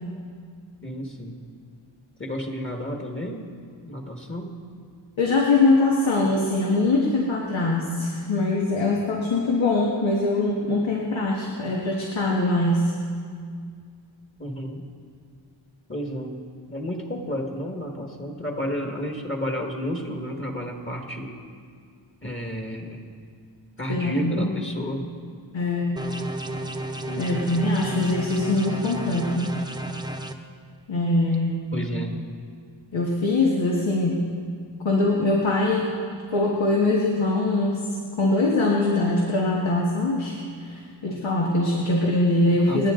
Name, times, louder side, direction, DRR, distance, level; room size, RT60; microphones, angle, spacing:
voice 1, 0.8-1.4 2.2-3.5 3.8-4.6 14.4-14.8 15.9-21.4 22.2-23.0 23.8-25.1 27.1-27.5 31.7-32.2 42.7-42.9, equal, 25° left, 1 dB, 1.8 m, -31 dB
voice 2, 5.2-12.9 23.9-24.6 25.5-26.0 27.2-29.6 30.9-31.7 32.9-34.3 34.8-35.9 36.3-37.8 38.2-42.9, left 2 dB, 85° left, -2 dB, 1.7 m, -22 dB
sound 1, 26.0-30.3, right 1 dB, 10° right, 0.8 m, -33 dB
28.5 x 10.0 x 3.9 m, 2.2 s
wide cardioid pair, 95°, 45 cm